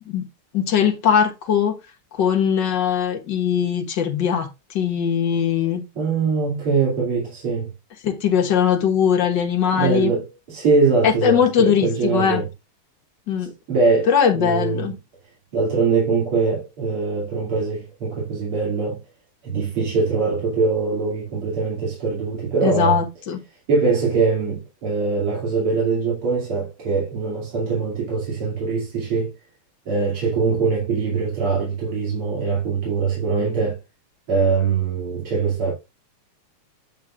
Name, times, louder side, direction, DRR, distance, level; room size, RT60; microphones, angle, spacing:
voice 1, 0.5-1.8 2.1-4.5 4.7-5.8 8.0-10.1 11.0-12.4 13.3-13.5 14.1-14.9 22.6-23.4, left 8 dB, 60° left, 1.9 m, -20 dB
voice 2, 5.9-7.7 9.7-12.5 13.4-14.9 15.5-19.0 19.4-23.0 23.7-29.3 29.9-33.8 34.3-35.7, right 4 dB, 75° right, 3.5 m, -22 dB
8.9 x 8.2 x 2.4 m
omnidirectional pair, 2.4 m